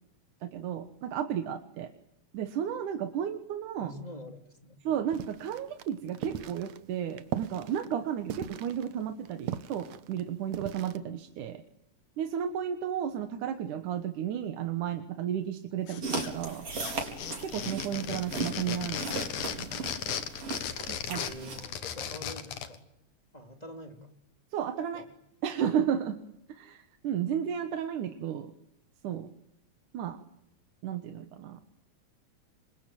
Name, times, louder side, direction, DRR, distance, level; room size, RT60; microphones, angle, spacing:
voice 1, 0.4-1.9 2.3-3.9 4.8-11.6 12.2-16.7 17.4-19.8 20.9-21.2 24.5-25.1 25.4-26.2 26.5-28.5 29.0-29.3 29.9-30.2 30.8-31.6, right 9 dB, 85° right, 8 dB, 2.8 m, -33 dB
voice 2, 3.8-4.8 21.1-22.9 23.3-24.1 24.9-25.1, left 1 dB, 15° left, 4 dB, 2.7 m, -45 dB
sound 1, 5.1-11.0, right 10 dB, 70° right, 2.3 m, -39 dB
sound 2, 15.9-16.5 16.8-22.8, left 8 dB, 85° left, 3.3 m, -36 dB
sound 3, 16.0-21.7, right 3 dB, 50° right, 5.4 m, -37 dB
27.0 x 23.0 x 9.2 m, 0.81 s
omnidirectional pair, 3.4 m